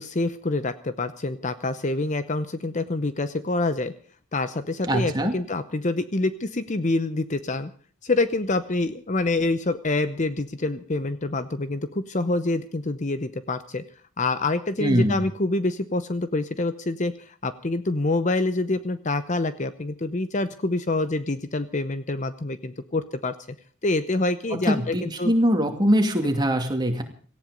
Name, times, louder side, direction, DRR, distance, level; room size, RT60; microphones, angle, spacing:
voice 1, 0.0-3.9 4.3-7.7 8.0-13.8 14.2-23.3 23.8-25.3, left 2 dB, 35° left, 12 dB, 0.8 m, -26 dB
voice 2, 4.9-5.3 14.8-15.2 24.6-27.0, equal, 20° right, 4 dB, 2.6 m, -22 dB
18.0 x 15.0 x 5.2 m, 0.43 s
head